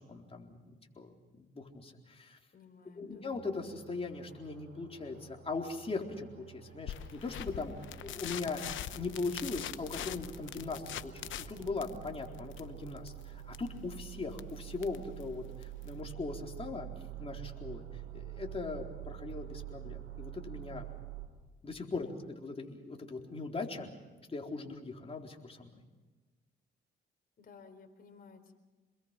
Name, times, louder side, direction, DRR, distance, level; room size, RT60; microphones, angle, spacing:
voice 1, 0.1-1.1 1.4-2.4 3.0-7.7 8.0-8.6 8.9-16.9 17.2-17.9 18.1-20.9 21.6-23.9 24.3-25.7, left 3 dB, 30° left, 1 dB, 4.0 m, -40 dB
voice 2, 2.5-3.3 22.0-22.2 27.4-28.6, left 5 dB, 50° left, 6 dB, 4.4 m, -56 dB
sound 1, 3.3-21.3, right 14 dB, 85° right, 3.3 m, -48 dB
sound 2, 6.9-16.0, left 11 dB, 75° left, 0.9 m, -44 dB
28.5 x 21.5 x 5.9 m, 1.2 s
cardioid pair, 90°, 20 cm